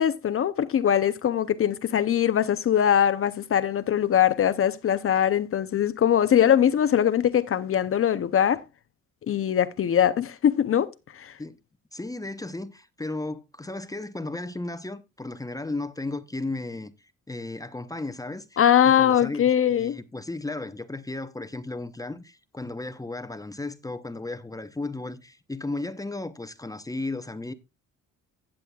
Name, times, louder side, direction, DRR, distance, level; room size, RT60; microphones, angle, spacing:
voice 1, 0.0-8.6 9.3-10.9 11.1-11.3 18.6-20.0, left 9 dB, 45° left, 0.7 m, -22 dB
voice 2, 11.9-27.5, left 2 dB, 10° left, 0.8 m, -35 dB
15.5 x 7.6 x 2.3 m
cardioid pair, 90°, 30 cm